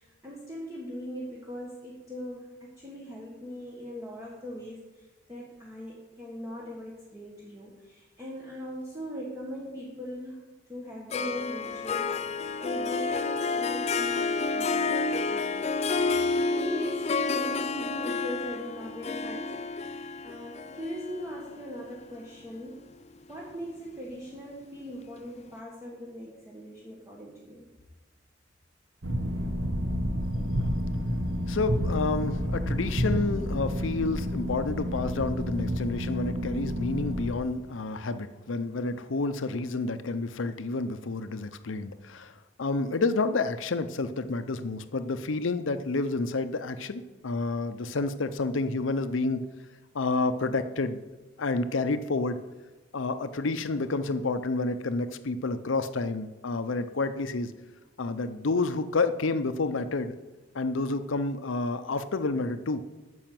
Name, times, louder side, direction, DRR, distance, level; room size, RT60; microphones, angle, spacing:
voice 1, 0.0-22.8 23.3-27.7, equal, 15° right, -4 dB, 1.4 m, -40 dB
Harp, 11.1-22.5, left 4 dB, 35° left, 0.4 m, -30 dB
sound 1, 29.0-37.3, equal, 75° right, 1.1 m, -30 dB
voice 2, 31.5-42.3 42.6-49.4 49.9-51.0 51.4-52.4 52.9-57.5 58.0-60.1 60.5-62.9, left 3 dB, 80° left, 11 dB, 0.7 m, -29 dB
8.9 x 6.3 x 7.6 m, 1.1 s
head